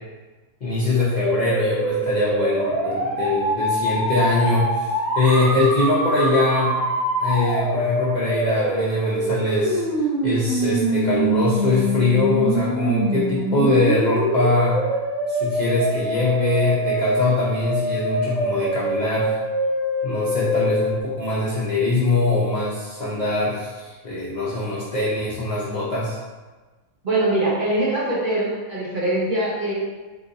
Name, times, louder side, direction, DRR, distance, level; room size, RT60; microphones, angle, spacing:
voice 1, 0.6-4.9 5.2-6.8 7.2-9.8 10.2-14.8 15.3-19.3 20.0-26.2, left 2 dB, 60° left, -7 dB, 0.4 m, -22 dB
sound 1, 1.1-21.0, right 1 dB, 55° right, 1.1 m, -24 dB
voice 2, 27.0-29.7, right 1 dB, 40° right, -8 dB, 0.9 m, -22 dB
3.0 x 2.5 x 3.8 m, 1.3 s
omnidirectional pair, 1.5 m